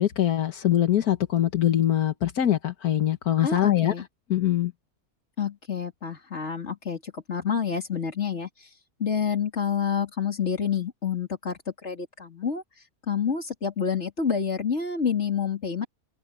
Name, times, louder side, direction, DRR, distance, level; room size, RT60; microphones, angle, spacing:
voice 1, 0.0-3.9 4.3-4.7, left 12 dB, 85° left, 1.8 m, -23 dB
voice 2, 3.4-4.1 5.4-8.5 9.0-12.6 13.1-15.9, left 7 dB, 50° left, 3.3 m, -28 dB
open air
omnidirectional pair, 1.6 m